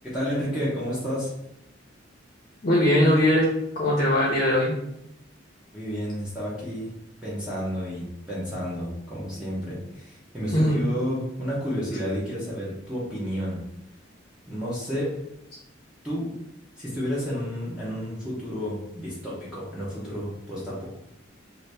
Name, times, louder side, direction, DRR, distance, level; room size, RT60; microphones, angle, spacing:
voice 1, 0.0-1.3 5.7-6.9 7.2-13.6 14.5-15.1 16.0-16.3 16.8-20.9, equal, 5° right, -8 dB, 0.8 m, -31 dB
voice 2, 2.6-3.5 3.8-4.7 10.5-10.8, left 1 dB, 40° left, -3 dB, 0.7 m, -20 dB
2.8 x 2.6 x 3.3 m, 0.81 s
head